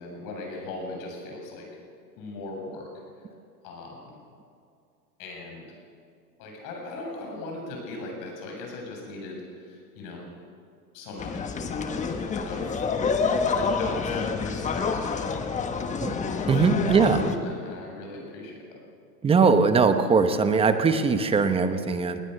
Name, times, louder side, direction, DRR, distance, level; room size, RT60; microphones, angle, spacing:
voice 1, 0.0-1.7 2.2-2.9 3.6-4.2 5.2-5.7 6.4-10.2 10.9-12.9 13.5-18.8, left 2 dB, 40° left, 0 dB, 7.5 m, -39 dB
sound 1, 11.2-17.4, left 5 dB, 15° left, 1.2 m, -28 dB
voice 2, 16.5-17.2 19.2-22.2, right 5 dB, 10° right, 9 dB, 1.0 m, -21 dB
21.0 x 20.0 x 6.7 m, 2.3 s
hypercardioid pair, 135°, 49 cm